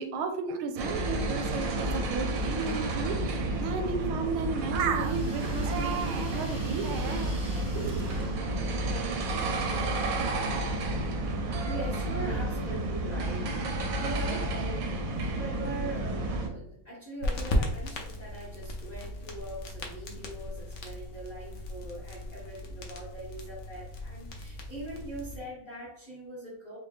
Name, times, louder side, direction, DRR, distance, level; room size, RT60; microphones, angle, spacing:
voice 1, 0.0-7.3 7.7-8.0, right 5 dB, 85° right, 7 dB, 1.4 m, -33 dB
sound 1, 0.8-16.5, right 2 dB, 70° right, 0.8 m, -31 dB
sound 2, 4.9-9.1, right 1 dB, 30° right, 0.5 m, -47 dB
voice 2, 11.6-13.7 14.0-14.9 15.3-26.8, right 1 dB, 30° left, -6 dB, 0.8 m, -41 dB
sound 3, 17.2-25.4, left 1 dB, 80° left, 0.6 m, -36 dB
4.7 x 2.2 x 3.5 m, 0.77 s
omnidirectional pair, 2.2 m